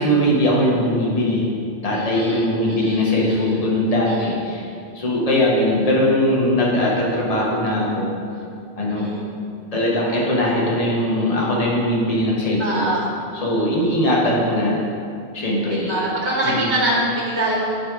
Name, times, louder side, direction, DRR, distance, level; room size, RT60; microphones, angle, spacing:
voice 1, 0.0-1.5 1.8-4.7 4.9-8.1 8.8-9.1 9.7-12.9 13.3-14.8 15.3-15.9 16.4-16.7, left 1 dB, 35° left, -4 dB, 1.2 m, -20 dB
voice 2, 1.9-3.1 3.4-3.7 4.1-4.6 8.9-9.3 12.6-13.1 15.7-17.8, right 1 dB, 85° right, -4 dB, 1.6 m, -25 dB
9.0 x 3.3 x 4.7 m, 2.4 s
omnidirectional pair, 1.1 m